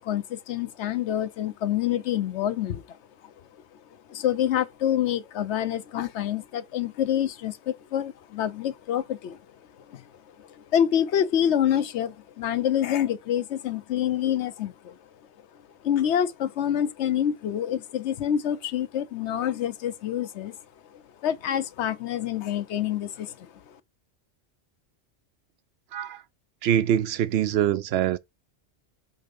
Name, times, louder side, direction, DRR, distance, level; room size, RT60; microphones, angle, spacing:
voice 1, 0.0-3.0 3.2-3.3 4.1-9.4 9.8-10.0 10.4-15.0 15.8-20.6 20.9-23.8, left 10 dB, 75° left, 1.0 m, -27 dB
voice 2, 26.6-28.2, right 10 dB, 65° right, 0.7 m, -24 dB
6.6 x 3.6 x 5.2 m
omnidirectional pair, 1.2 m